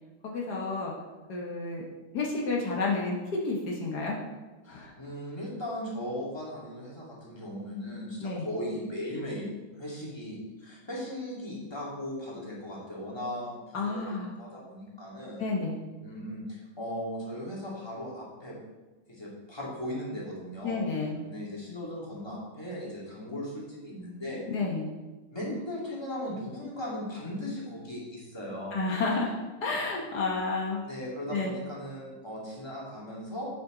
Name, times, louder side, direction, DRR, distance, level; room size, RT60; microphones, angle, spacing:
voice 1, 0.2-0.9 1.3-1.8 2.1-3.2 3.4-4.2 4.7-4.9 8.2-8.5 13.7-14.3 15.4-15.8 20.6-21.2 24.5-24.9 28.7-29.3 29.6-30.8 31.3-31.6, left 3 dB, 75° left, -2 dB, 1.8 m, -30 dB
voice 2, 4.6-9.5 9.8-15.4 16.0-18.6 19.1-20.8 21.2-24.4 25.3-28.8 30.9-33.5, left 1 dB, 15° left, -6 dB, 2.6 m, -37 dB
9.5 x 7.6 x 3.9 m, 1.2 s
omnidirectional pair, 1.8 m